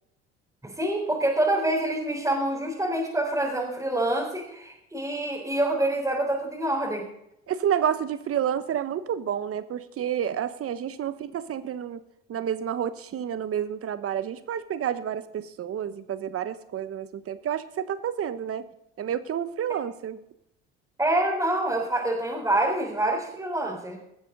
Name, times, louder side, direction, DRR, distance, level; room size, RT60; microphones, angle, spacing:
voice 1, 0.6-7.1 21.0-24.0, right 1 dB, 10° right, -5 dB, 3.9 m, -26 dB
voice 2, 7.5-12.0 12.3-18.6 19.0-20.2, right 9 dB, 45° right, 13 dB, 1.1 m, -29 dB
18.5 x 7.5 x 4.0 m, 0.79 s
supercardioid pair, 70°, 31 cm